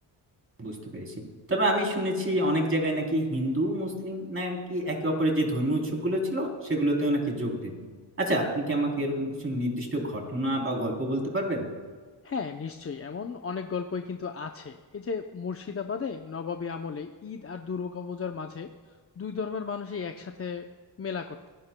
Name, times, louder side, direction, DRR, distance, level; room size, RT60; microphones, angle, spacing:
voice 1, 0.6-7.9 8.2-11.7, right 1 dB, 30° right, 0 dB, 3.5 m, -28 dB
voice 2, 12.2-18.7 19.2-20.7 21.0-21.5, left 5 dB, 30° left, 5 dB, 0.7 m, -34 dB
25.5 x 15.5 x 2.3 m, 1.5 s
cardioid pair, 100°, 46 cm